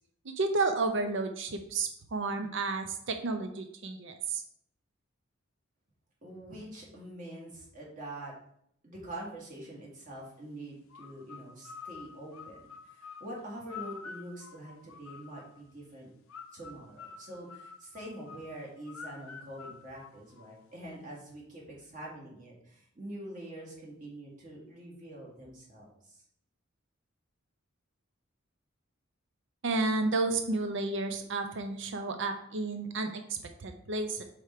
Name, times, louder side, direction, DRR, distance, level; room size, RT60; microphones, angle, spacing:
voice 1, 0.2-4.4 29.6-34.2, right 3 dB, 60° right, 6 dB, 0.6 m, -31 dB
voice 2, 6.2-8.3 8.8-16.1 16.5-26.2, right 1 dB, 40° right, -3 dB, 1.9 m, -45 dB
sound 1, 10.9-15.6 16.3-20.7, left 5 dB, 90° left, 0.7 m, -48 dB
4.9 x 4.4 x 4.8 m, 0.70 s
head